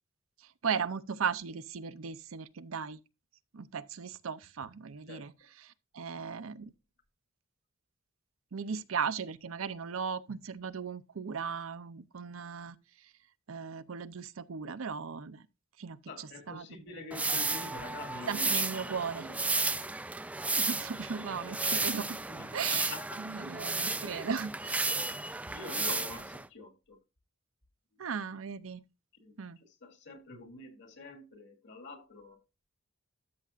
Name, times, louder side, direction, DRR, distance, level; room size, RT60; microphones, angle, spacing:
voice 1, 0.4-3.0 3.5-5.3 5.6-6.7 8.5-13.1 13.5-15.5 15.8-16.7 18.3-19.2 20.6-22.2 22.5-24.8 28.0-28.8 29.4-29.6, right 6 dB, 85° right, 0.6 m, -37 dB
voice 2, 16.1-19.6 22.3-23.2 25.5-27.0 29.2-29.3 29.8-32.4, left 2 dB, 60° left, 2.6 m, -46 dB
sound 1, 17.1-26.5, right 3 dB, 5° right, 0.3 m, -33 dB
13.0 x 6.8 x 2.4 m
head